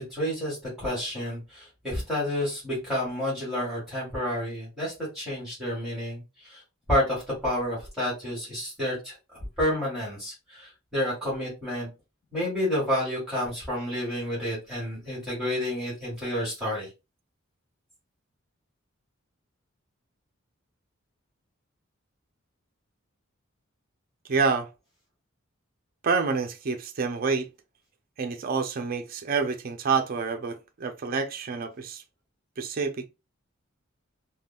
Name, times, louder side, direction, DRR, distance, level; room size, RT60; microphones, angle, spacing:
voice 1, 0.0-6.6 6.9-9.1 9.6-11.9 12.3-16.9, left 1 dB, ahead, 1.6 m, -30 dB
voice 2, 24.3-24.7 26.0-27.5 28.2-32.0 32.6-33.1, right 5 dB, 45° right, 0.5 m, -28 dB
3.5 x 2.2 x 2.3 m
head